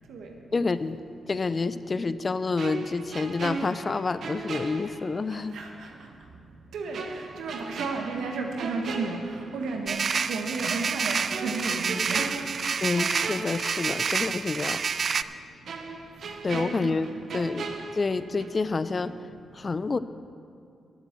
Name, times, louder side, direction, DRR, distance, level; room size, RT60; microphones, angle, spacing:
voice 1, 0.5-1.0 1.3-5.6 12.8-14.8 16.4-17.1 17.3-17.7 17.9-19.1 19.5-20.0, left 4 dB, 40° left, 14 dB, 0.4 m, -28 dB
sound 1, 2.6-5.5 5.8-6.0 6.9-9.9 10.2-10.4 11.3-14.3 14.6-14.7 15.7-18.7 18.9-19.2, right 4 dB, 70° right, 0.9 m, -37 dB
voice 2, 6.7-9.2 9.5-10.0 10.3-12.3 16.8-17.1, right 3 dB, 85° right, 2 dB, 1.5 m, -33 dB
sound 2, 9.9-15.2, right 5 dB, 55° right, 0.3 m, -28 dB
11.0 x 7.9 x 7.4 m, 2.5 s
cardioid pair, 65°, 0 cm